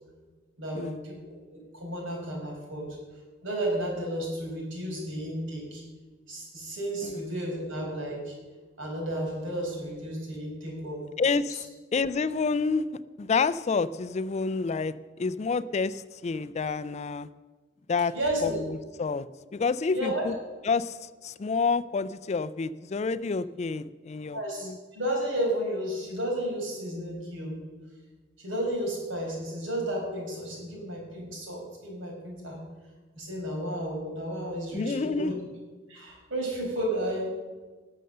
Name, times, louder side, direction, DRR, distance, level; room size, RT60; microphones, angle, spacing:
voice 1, 0.6-1.2 1.5-2.9 3.4-5.8 6.3-8.3 8.8-11.0 18.1-18.6 19.9-20.2 24.3-27.6 28.4-32.6 33.2-35.3 35.9-37.3, right 1 dB, 80° right, -1 dB, 5.0 m, -32 dB
voice 2, 11.2-11.7 11.9-14.9 15.2-17.3 17.9-18.1 18.4-19.3 19.5-20.3 20.6-24.8 34.7-35.4, left 4 dB, 35° left, 15 dB, 0.4 m, -29 dB
19.0 x 6.6 x 6.7 m, 1.3 s
head